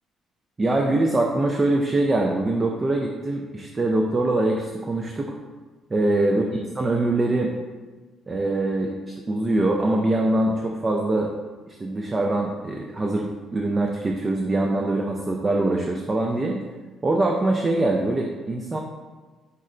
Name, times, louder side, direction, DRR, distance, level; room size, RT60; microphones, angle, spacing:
voice 1, 0.6-5.3 5.9-6.5 6.8-7.5 8.3-8.9 9.3-11.3 11.7-16.6 17.0-18.8, right 2 dB, 25° right, 1 dB, 0.3 m, -23 dB
5.4 x 2.1 x 3.7 m, 1.3 s
cardioid pair, 120°, 0 cm